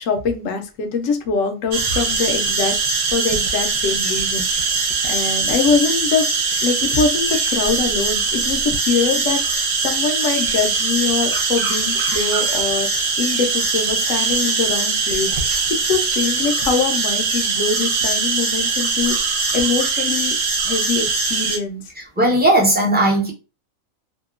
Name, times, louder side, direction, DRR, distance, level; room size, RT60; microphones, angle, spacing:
voice 1, 0.0-2.8 3.1-4.8 5.0-6.3 6.6-15.3 15.8-20.4 20.7-21.8, left 5 dB, 70° left, 5 dB, 0.9 m, -23 dB
sound 1, 1.7-21.6, right 4 dB, 70° right, 1.0 m, -21 dB
voice 2, 22.0-23.3, right 1 dB, 10° right, -2 dB, 0.5 m, -17 dB
2.8 x 2.2 x 2.4 m, 0.30 s
omnidirectional pair, 1.4 m